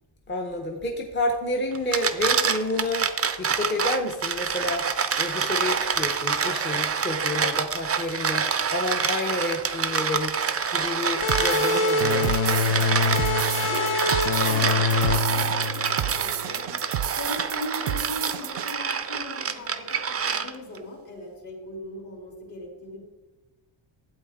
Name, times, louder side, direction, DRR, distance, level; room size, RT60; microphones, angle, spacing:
voice 1, 0.3-3.1 3.4-10.3 10.7-12.4, left 2 dB, 25° left, 1 dB, 0.7 m, -29 dB
sound 1, 1.7-20.8, right 6 dB, 30° right, 0.5 m, -27 dB
sound 2, 11.2-16.5, left 4 dB, 90° left, 0.7 m, -25 dB
sound 3, 11.3-18.7, right 11 dB, 85° right, 0.6 m, -32 dB
voice 2, 13.7-16.8 17.1-23.0, left 1 dB, 55° left, -2 dB, 3.2 m, -39 dB
12.0 x 8.3 x 3.6 m, 1.1 s
wide cardioid pair, 175°, 48 cm